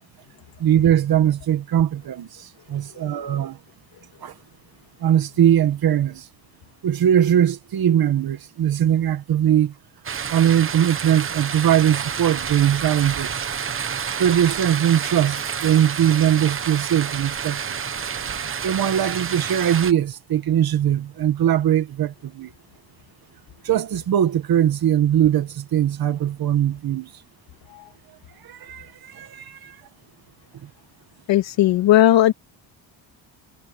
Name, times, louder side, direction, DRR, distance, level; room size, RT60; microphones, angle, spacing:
voice 1, 0.6-3.6 4.2-4.3 5.0-6.3 6.8-9.7 10.3-13.4 14.2-17.6 18.6-22.5 23.6-27.1 28.4-29.8, right 10 dB, 55° right, 1.8 m, -20 dB
sound 1, 10.0-19.9, right 7 dB, 30° right, 1.0 m, -29 dB
voice 2, 31.3-32.3, left 13 dB, 80° left, 2.4 m, -16 dB
cardioid pair, 150°, 44 cm